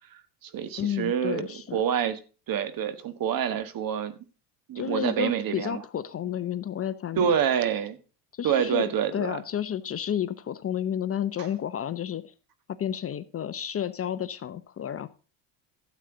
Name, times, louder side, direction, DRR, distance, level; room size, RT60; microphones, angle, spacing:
voice 1, 0.1-2.2 2.5-4.1 4.7-5.8 7.2-8.0 8.4-9.4, right 8 dB, 45° right, 1.5 m, -27 dB
voice 2, 0.8-1.8 4.7-7.3 8.3-12.3 12.7-15.1, left 9 dB, 30° left, 0.7 m, -31 dB
12.5 x 8.2 x 3.8 m
supercardioid pair, 100°, 47 cm